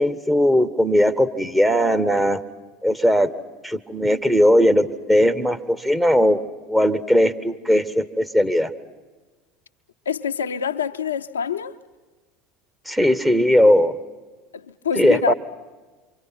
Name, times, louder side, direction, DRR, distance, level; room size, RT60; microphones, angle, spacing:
voice 1, 0.0-2.4 2.8-3.3 3.6-6.4 6.7-8.7 12.9-14.0 15.0-15.3, equal, 5° right, 1.5 m, -18 dB
voice 2, 10.1-11.8 14.5-15.3, left 7 dB, 85° left, 0.7 m, -25 dB
28.0 x 24.5 x 5.9 m
hypercardioid pair, 75°, 0 cm